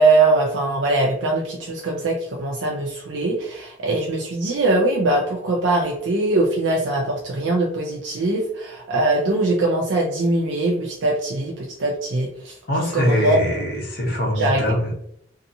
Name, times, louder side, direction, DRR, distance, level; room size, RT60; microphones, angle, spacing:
voice 1, 0.0-12.5 12.9-13.6 14.4-14.6, right 2 dB, 70° right, -1 dB, 0.4 m, -21 dB
voice 2, 12.7-14.9, left 1 dB, 50° left, -2 dB, 0.7 m, -23 dB
2.7 x 2.3 x 2.6 m, 0.71 s
head